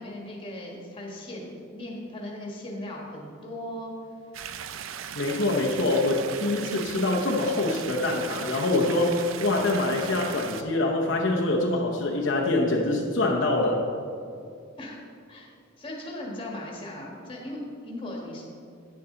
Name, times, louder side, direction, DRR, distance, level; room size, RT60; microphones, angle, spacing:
voice 1, 0.0-3.9 14.8-15.5 15.8-18.4, left 1 dB, 25° left, -2 dB, 1.5 m, -38 dB
sound 1, 4.3-10.6, right 8 dB, 80° right, 0.4 m, -38 dB
voice 2, 5.2-13.9, left 2 dB, 65° left, -2 dB, 0.8 m, -25 dB
9.6 x 7.1 x 3.8 m, 2.3 s
head